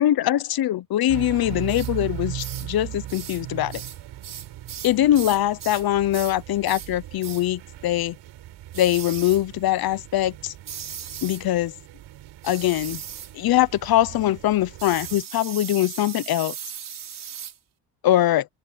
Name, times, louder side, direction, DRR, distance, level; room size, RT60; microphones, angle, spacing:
voice 1, 0.0-3.8 4.8-8.1 8.7-10.5 11.2-11.7 12.4-13.0 13.3-16.5 18.0-18.5, left 13 dB, 60° left, 0.9 m, -22 dB
sound 1, 1.1-15.2, right 13 dB, 85° right, 6.3 m, -39 dB
sound 2, 1.7-1.9 2.4-2.7 3.1-3.4 3.7-5.9 6.1-6.4 6.6-6.9 7.2-7.5 8.7-9.4 10.6-11.4 12.4-13.3 14.8-17.6, right 9 dB, 50° right, 5.8 m, -37 dB
open air
cardioid pair, 150°, 42 cm